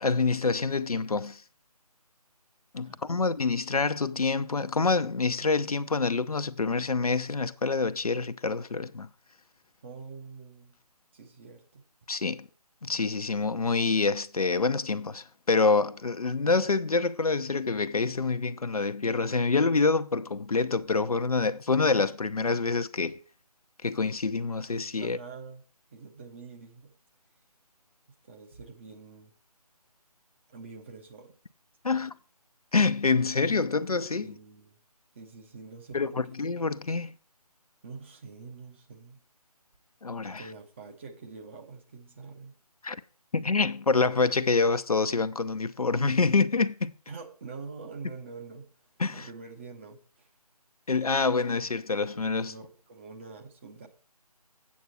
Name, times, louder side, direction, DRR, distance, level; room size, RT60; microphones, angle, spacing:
voice 1, 0.0-1.4 2.7-9.1 12.1-12.5 12.8-23.2 23.8-25.2 31.8-32.2 32.7-34.3 35.9-37.1 40.0-40.5 42.8-43.0 43.3-46.9 49.0-49.3 50.9-52.5, left 4 dB, 65° left, 0.7 m, -26 dB
voice 2, 2.8-3.4 9.8-10.8 11.1-11.8 25.0-25.6 25.9-26.9 28.2-29.3 30.5-31.4 31.9-32.0 34.2-34.8 35.1-36.4 37.8-39.2 40.4-42.5 47.1-48.7 49.1-50.3 52.5-53.9, right 4 dB, 20° right, 0.9 m, -45 dB
8.5 x 8.1 x 4.1 m
figure-of-eight pair, 150°, 20 cm